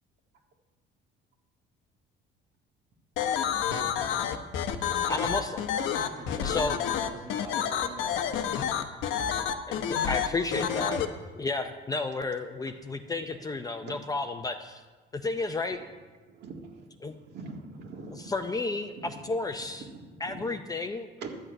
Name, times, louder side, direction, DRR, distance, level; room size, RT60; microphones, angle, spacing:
sound 1, 3.2-11.0, left 8 dB, 85° left, 1.0 m, -29 dB
voice 1, 5.1-5.7 6.4-6.8 9.7-11.0 11.3-14.8 15.1-15.8 17.0-17.1 18.1-19.9 20.2-21.1, left 3 dB, 20° left, 6 dB, 0.6 m, -32 dB
voice 2, 5.8-8.8, right 2 dB, 20° right, 4 dB, 1.3 m, -44 dB
voice 3, 16.3-16.9 17.3-18.3 19.0-19.1 19.9-20.4 21.2-21.3, right 4 dB, 60° right, 2 dB, 1.9 m, -42 dB
12.0 x 6.2 x 9.1 m, 1.3 s
cardioid pair, 140°, 20 cm